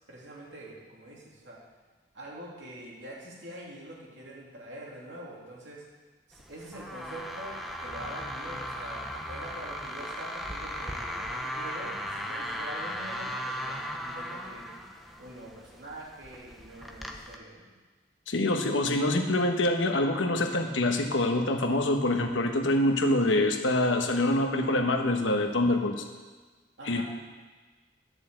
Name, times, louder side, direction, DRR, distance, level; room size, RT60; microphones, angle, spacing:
voice 1, 0.1-1.6 2.1-5.8 6.3-14.7 15.2-17.7 26.8-27.0, right 1 dB, 75° right, -4 dB, 3.0 m, -44 dB
sound 1, 6.3-17.4, equal, ahead, 0.7 m, -37 dB
voice 2, 18.3-26.1 26.8-27.0, left 1 dB, 90° left, 4 dB, 1.2 m, -25 dB
11.0 x 6.8 x 7.7 m, 1.3 s
head